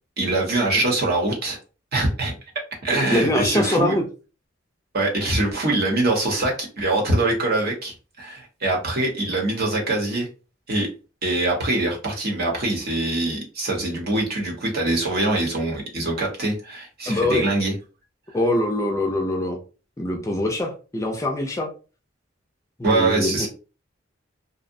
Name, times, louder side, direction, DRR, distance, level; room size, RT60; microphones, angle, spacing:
voice 1, 0.2-1.6 1.9-2.3 2.8-3.9 4.9-10.3 10.7-10.9 11.2-17.7 22.8-23.5, right 2 dB, 55° right, 0 dB, 0.9 m, -23 dB
voice 2, 3.1-4.0 17.1-17.5 18.3-19.6 20.0-21.7 22.8-23.5, left 1 dB, 15° left, 2 dB, 0.4 m, -23 dB
2.7 x 2.0 x 2.5 m, 0.34 s
head